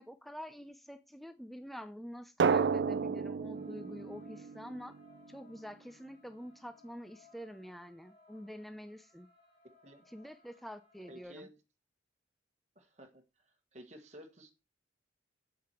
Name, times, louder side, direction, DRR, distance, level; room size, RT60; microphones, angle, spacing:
voice 1, 0.0-4.9 5.3-9.3 10.1-11.5, equal, ahead, 0.5 m, -47 dB
Drum, 2.4-5.1, right 5 dB, 65° right, 0.4 m, -31 dB
sound 1, 3.5-11.2, left 3 dB, 45° left, 5.3 m, -64 dB
voice 2, 11.1-11.5 12.7-13.4 13.7-14.5, equal, 35° right, 1.5 m, -53 dB
7.7 x 7.4 x 4.4 m
head